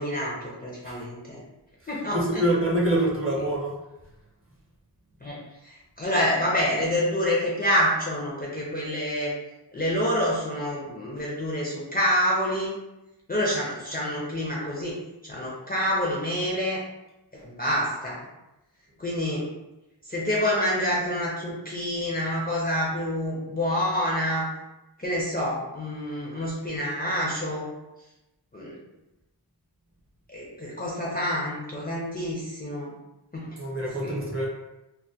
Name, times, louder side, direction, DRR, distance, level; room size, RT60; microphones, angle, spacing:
voice 1, 0.0-1.4 1.9-2.2 5.2-5.4 5.6-9.3 9.7-12.7 13.3-15.0 15.2-16.8 17.4-18.2 19.0-19.5 20.1-24.5 25.0-27.7 28.5-28.8 30.3-32.9 33.3-33.5 34.0-34.1, equal, 20° left, -6 dB, 0.4 m, -27 dB
voice 2, 2.1-3.8 5.2-5.3 33.6-34.5, right 1 dB, 30° right, -5 dB, 0.7 m, -25 dB
2.2 x 2.1 x 2.6 m, 0.96 s
wide cardioid pair, 100°, 43 cm